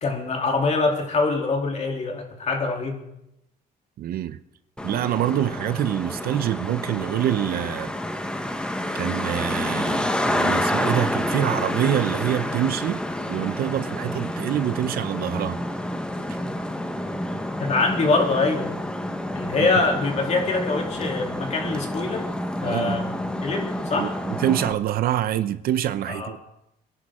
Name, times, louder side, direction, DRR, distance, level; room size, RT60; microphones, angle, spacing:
voice 1, 0.0-3.0 17.6-18.7 19.3-22.3 22.6-23.1 23.4-24.1 26.1-26.3, left 3 dB, 40° left, 3.0 m, -24 dB
voice 2, 4.0-4.4 4.8-7.9 8.9-13.0 13.3-15.6 19.6-19.7 22.7-23.0 23.9-26.4, right 11 dB, 60° right, 0.7 m, -25 dB
Traffic noise roadway noise, 4.8-24.7, left 1 dB, 5° left, 1.1 m, -29 dB
23.5 x 11.0 x 3.7 m
cardioid pair, 110°, 17 cm